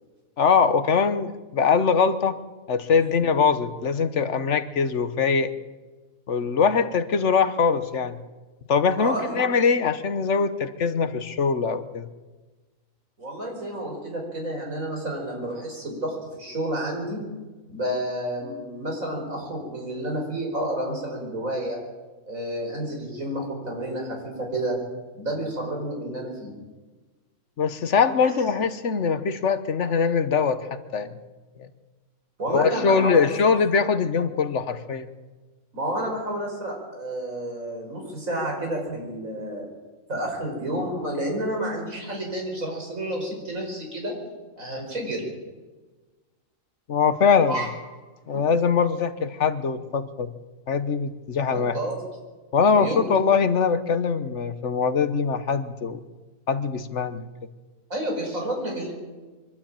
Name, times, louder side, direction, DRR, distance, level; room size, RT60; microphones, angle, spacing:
voice 1, 0.4-2.4 2.7-5.5 6.3-8.2 8.7-12.1 27.6-31.1 31.6-31.7 32.5-35.1 46.9-47.6 48.3-50.3 50.7-51.7 52.5-56.0 56.5-57.3, left 5 dB, 60° left, 11 dB, 1.3 m, -22 dB
voice 2, 9.0-9.4 13.2-17.2 17.7-21.8 22.3-24.8 25.1-26.5 28.2-28.3 32.4-33.6 35.7-39.6 40.1-44.1 44.6-45.2 47.5-47.7 51.5-52.0 52.6-53.1 57.9-58.9, right 1 dB, 75° right, 0 dB, 5.7 m, -30 dB
23.5 x 12.5 x 8.9 m, 1.3 s
omnidirectional pair, 1.4 m